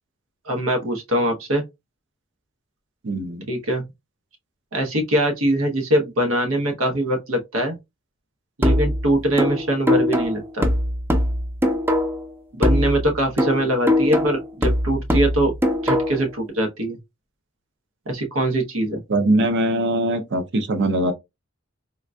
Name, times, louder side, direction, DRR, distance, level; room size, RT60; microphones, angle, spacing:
voice 1, 0.5-1.6 3.5-3.8 4.7-7.8 8.6-10.7 12.5-15.5 15.8-17.0 18.1-19.0, right 1 dB, 85° right, 0.9 m, -22 dB
voice 2, 3.0-3.5 19.1-21.1, right 1 dB, 60° right, 0.6 m, -21 dB
sound 1, 8.6-12.3 12.6-16.3, left 1 dB, 10° right, 0.5 m, -21 dB
3.7 x 2.5 x 2.2 m
head